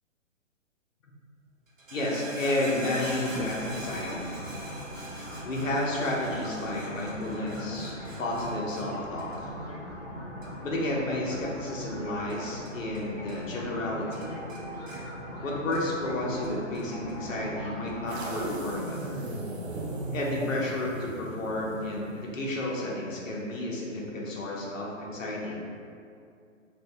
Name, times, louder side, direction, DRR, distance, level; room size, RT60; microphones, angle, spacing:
sound 1, 1.7-13.0 13.3-13.9 14.1-16.1 16.4-17.2 17.9-18.0, right 1 dB, 80° right, 1.0 m, -44 dB
voice 1, 1.9-4.4 5.4-9.5 10.6-14.4 15.4-19.2 20.1-25.5, left 1 dB, 80° left, -3 dB, 0.9 m, -31 dB
sound 2, 2.7-18.7, equal, 30° left, 0.7 m, -40 dB
Electrical Tape Pull - Medium, 18.1-22.4, right 2 dB, 60° right, 0.5 m, -37 dB
2.7 x 2.6 x 3.4 m, 2.4 s
hypercardioid pair, 175°, 38 cm